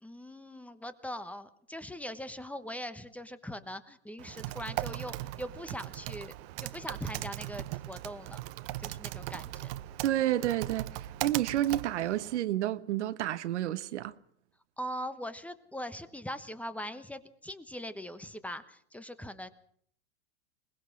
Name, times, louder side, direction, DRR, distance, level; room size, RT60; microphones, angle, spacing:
voice 1, 0.0-6.3 6.6-8.4 8.8-9.7 14.8-19.5, equal, 5° left, 1.1 m, -41 dB
Typing, 4.2-12.4, right 16 dB, 55° right, 0.8 m, -39 dB
voice 2, 10.0-14.1, right 13 dB, 75° right, 1.2 m, -30 dB
22.0 x 19.5 x 6.1 m
hypercardioid pair, 120°, 35 cm